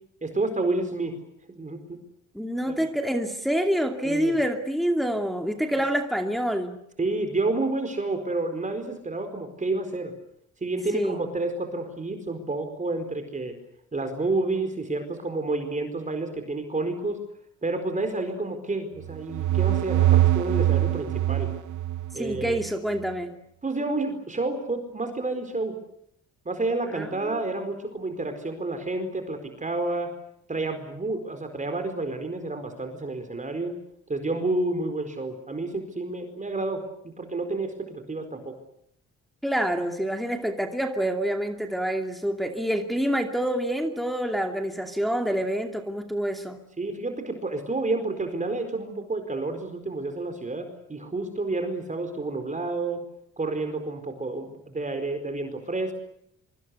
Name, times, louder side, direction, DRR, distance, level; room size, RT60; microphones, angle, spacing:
voice 1, 0.2-1.1 1.5-2.0 2.8-2.9 4.0-4.4 7.0-10.1 10.6-13.6 13.9-17.2 17.6-21.5 22.1-22.6 23.6-25.8 26.4-30.1 30.5-33.7 34.1-38.6 46.8-53.0 53.4-55.9, right 2 dB, 25° right, 7 dB, 4.5 m, -30 dB
voice 2, 2.3-6.8 10.9-11.2 22.1-23.3 26.9-27.4 39.4-46.6, equal, ahead, 4 dB, 2.6 m, -27 dB
sound 1, 19.0-22.7, right 14 dB, 75° right, 1.1 m, -23 dB
25.0 x 24.0 x 8.3 m, 0.72 s
cardioid pair, 90°, 30 cm